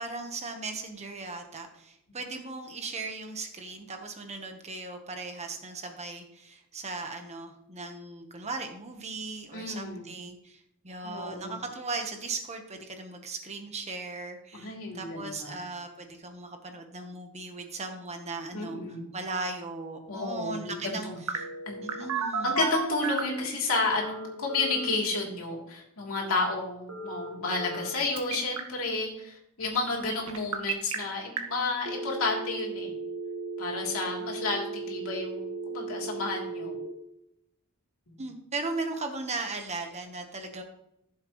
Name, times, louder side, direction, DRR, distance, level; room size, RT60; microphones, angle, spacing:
voice 1, 0.0-18.8 19.1-21.5 21.8-22.6 38.2-40.6, right 3 dB, 30° right, 5 dB, 1.1 m, -37 dB
voice 2, 9.5-10.1 11.0-11.6 14.5-15.6 18.5-19.0 20.1-21.2 21.7-22.1 22.4-32.9 33.6-36.8, left 3 dB, 70° left, -1 dB, 3.1 m, -31 dB
Telephone, 21.3-23.4 23.9-24.9 26.9-27.9 28.2-28.6 30.3-30.9 31.4-31.5 31.8-36.9, right 4 dB, 80° right, 1.6 m, -34 dB
14.5 x 7.4 x 3.1 m, 0.80 s
head